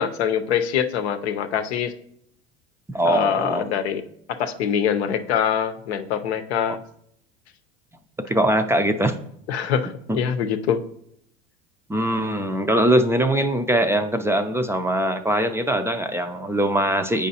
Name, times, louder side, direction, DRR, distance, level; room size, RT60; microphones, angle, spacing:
voice 1, 0.0-1.9 3.1-4.0 4.4-6.8 9.5-10.8, left 8 dB, 85° left, 8 dB, 0.7 m, -24 dB
voice 2, 2.9-3.6 6.7-6.8 8.2-9.1 10.1-10.2 11.9-17.3, right 1 dB, 10° right, 7 dB, 0.4 m, -22 dB
8.5 x 5.0 x 2.8 m, 0.71 s
supercardioid pair, 95°, 32 cm